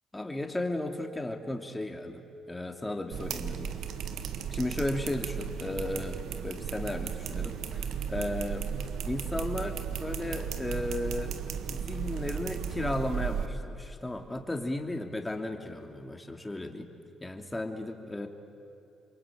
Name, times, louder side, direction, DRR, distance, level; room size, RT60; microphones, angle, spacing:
voice 1, 0.1-3.8 4.5-8.7 9.0-11.4 11.7-16.9 17.2-18.3, left 1 dB, 15° left, 4 dB, 3.0 m, -35 dB
sound 1, 3.1-13.5, right 8 dB, 75° right, 1.6 m, -35 dB
27.5 x 23.0 x 9.3 m, 2.8 s
supercardioid pair, 70°, 0 cm